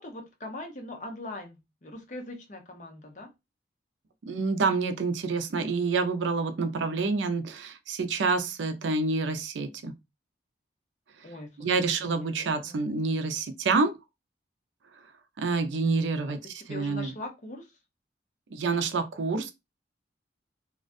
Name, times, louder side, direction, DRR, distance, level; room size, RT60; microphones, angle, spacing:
voice 1, 0.0-3.3 11.2-11.7 12.0-12.7 15.7-16.3 16.7-17.7, left 2 dB, 40° left, 0.7 m, -42 dB
voice 2, 4.2-9.9 11.6-13.9 15.4-16.4 16.7-17.1 18.5-19.5, right 4 dB, 80° right, 0.4 m, -27 dB
2.4 x 2.1 x 2.4 m
head